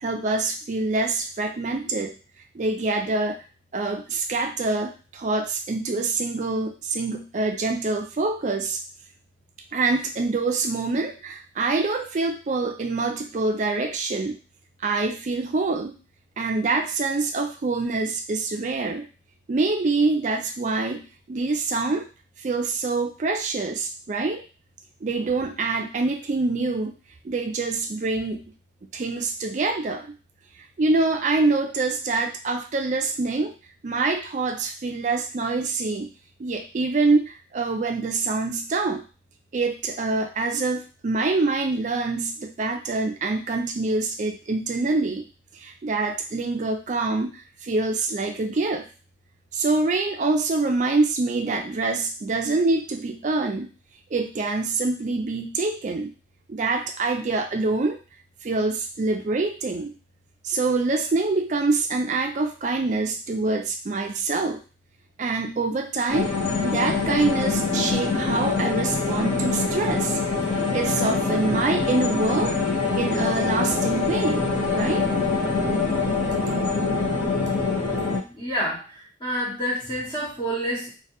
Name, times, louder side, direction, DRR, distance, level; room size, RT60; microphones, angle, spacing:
voice 1, 0.0-2.2 2.5-3.4 3.7-8.8 9.7-14.4 14.8-16.0 16.4-19.1 19.5-21.0 21.3-22.1 22.4-24.4 25.0-26.9 27.2-28.4 28.9-30.1 30.8-33.5 33.8-36.1 36.4-39.0 39.5-45.3 45.5-48.9 49.5-53.7 54.1-56.1 56.5-58.0 58.4-59.9 60.4-64.6 65.2-66.3 66.6-70.2 70.7-72.5 73.0-75.1, right 3 dB, 40° right, 4 dB, 0.3 m, -25 dB
sound 1, 66.1-78.2, left 4 dB, 45° left, 0.9 m, -24 dB
voice 2, 78.3-78.8 79.2-80.9, equal, 25° left, -5 dB, 0.7 m, -28 dB
2.2 x 2.1 x 2.9 m, 0.34 s
head